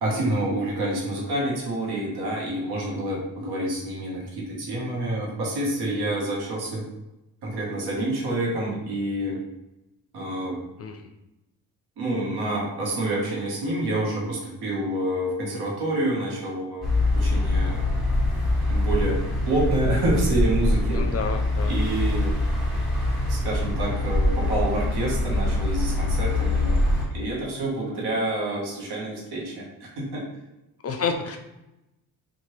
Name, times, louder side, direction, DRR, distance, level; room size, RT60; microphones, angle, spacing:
voice 1, 0.0-6.8 7.4-9.4 10.1-10.6 12.0-16.9 17.1-17.9 18.7-21.3 21.7-22.6 23.3-26.8 27.1-30.2, right 1 dB, 80° right, -3 dB, 1.1 m, -28 dB
sound 1, 16.8-27.0, left 1 dB, ahead, 1.4 m, -24 dB
voice 2, 20.9-21.7 30.8-31.4, left 5 dB, 40° left, 5 dB, 0.4 m, -29 dB
2.8 x 2.5 x 3.1 m, 0.95 s
cardioid pair, 80°, 38 cm